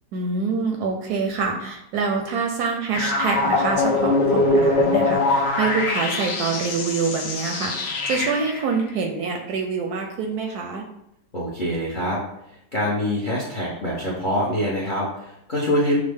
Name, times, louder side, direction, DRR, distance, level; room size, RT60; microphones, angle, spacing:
voice 1, 0.1-10.8, right 4 dB, 70° right, 2 dB, 1.0 m, -26 dB
sound 1, 2.9-8.6, left 2 dB, 75° left, 1.3 m, -22 dB
voice 2, 11.3-12.2 12.7-16.0, equal, 45° left, -5 dB, 0.6 m, -24 dB
6.2 x 2.1 x 3.4 m, 0.78 s
omnidirectional pair, 1.9 m